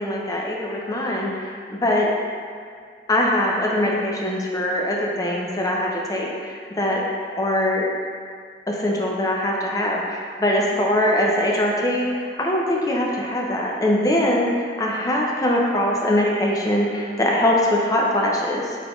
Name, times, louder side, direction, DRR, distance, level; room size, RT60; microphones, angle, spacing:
voice 1, 0.0-2.1 3.1-7.0 7.4-7.8 8.7-18.8, left 1 dB, 20° left, -2 dB, 0.5 m, -22 dB
3.9 x 3.6 x 3.0 m, 2.1 s
head